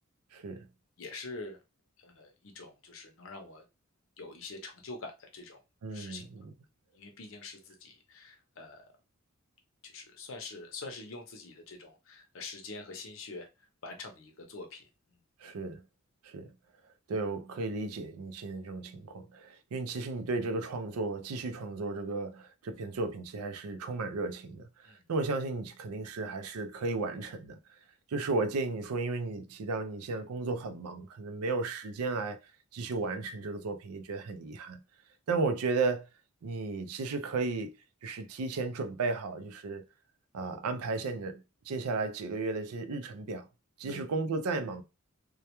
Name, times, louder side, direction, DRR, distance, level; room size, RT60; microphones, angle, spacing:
voice 1, 0.3-0.7 5.8-6.5 15.4-15.8 16.2-16.5 17.1-27.6 28.1-32.4 32.7-34.8 35.3-36.1 36.4-37.7 38.0-39.8 40.3-43.5 43.8-44.8, right 3 dB, 85° right, 0.4 m, -34 dB
voice 2, 1.0-1.6 2.0-3.6 4.2-5.6 5.9-6.2 6.9-8.9 9.8-13.5 13.8-14.8 24.8-25.0 43.8-44.1, left 3 dB, 65° left, 0.6 m, -45 dB
2.2 x 2.1 x 2.9 m
head